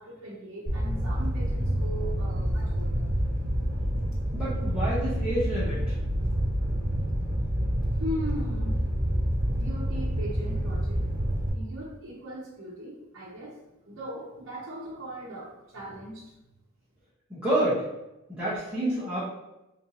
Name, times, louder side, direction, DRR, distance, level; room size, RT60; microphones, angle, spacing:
voice 1, 0.0-3.1 7.9-8.8 9.5-11.0 11.3-13.6 13.8-16.3, equal, 65° right, -7 dB, 0.9 m, -39 dB
Fire, 0.7-11.5, equal, 45° right, 1.4 m, -28 dB
voice 2, 4.3-5.8 17.3-17.9 18.4-19.2, right 1 dB, 5° right, -12 dB, 1.0 m, -28 dB
4.3 x 3.0 x 2.7 m, 0.93 s
head